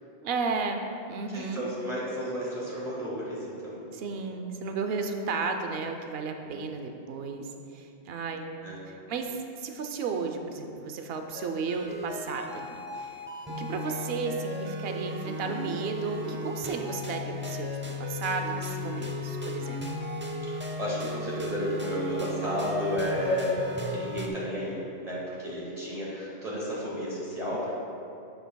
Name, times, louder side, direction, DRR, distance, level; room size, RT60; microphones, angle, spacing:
voice 1, 0.2-1.7 3.9-8.5 8.9-19.8, right 4 dB, 70° right, 5 dB, 0.9 m, -34 dB
voice 2, 1.3-3.9 6.2-6.6 8.6-8.9 20.8-23.6 23.9-27.7, equal, 35° right, -8 dB, 1.8 m, -32 dB
sound 1, 11.3-24.3, left 1 dB, 15° right, 0.5 m, -35 dB
11.5 x 7.9 x 2.3 m, 2.7 s
omnidirectional pair, 1.1 m